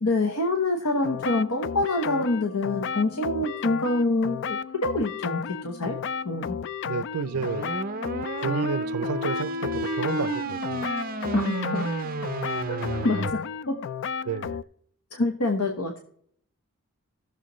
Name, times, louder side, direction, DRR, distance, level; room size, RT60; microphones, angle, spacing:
voice 1, 0.0-6.0 6.2-6.6 11.3-11.9 12.7-13.4 13.7-13.8 15.1-16.0, left 2 dB, 85° left, 1.1 m, -26 dB
sound 1, 1.0-14.6, left 6 dB, 55° left, 0.3 m, -33 dB
voice 2, 6.8-7.7 8.4-10.9 14.2-14.6, right 5 dB, 85° right, 0.5 m, -31 dB
sound 2, 7.3-13.3, right 2 dB, 40° right, 0.6 m, -31 dB
16.0 x 6.7 x 3.1 m
head